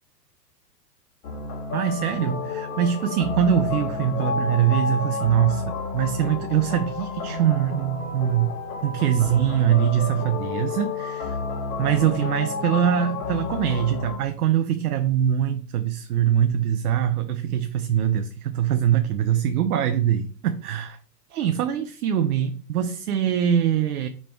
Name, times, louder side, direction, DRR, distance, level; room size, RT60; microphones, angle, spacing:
sound 1, 1.2-14.2, left 4 dB, 50° left, 2.9 m, -31 dB
voice 1, 1.7-8.5 8.8-11.4 11.8-21.0 21.3-24.1, right 9 dB, 65° right, 0.8 m, -23 dB
5.5 x 4.1 x 4.5 m
hypercardioid pair, 120°, 49 cm